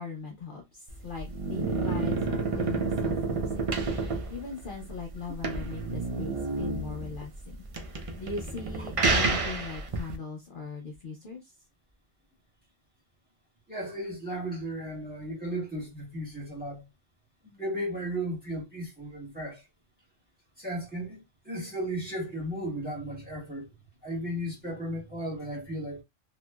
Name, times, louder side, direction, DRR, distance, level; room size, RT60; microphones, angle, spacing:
voice 1, 0.0-3.6 4.3-7.6 7.9-11.5, left 4 dB, 50° left, 0.8 m, -39 dB
sound 1, 0.9-10.1, right 3 dB, 60° right, 0.3 m, -30 dB
voice 2, 13.7-16.9 17.4-19.7 20.6-23.7 24.0-26.0, right 1 dB, 5° right, 1.5 m, -35 dB
3.0 x 2.7 x 2.2 m
omnidirectional pair, 1.3 m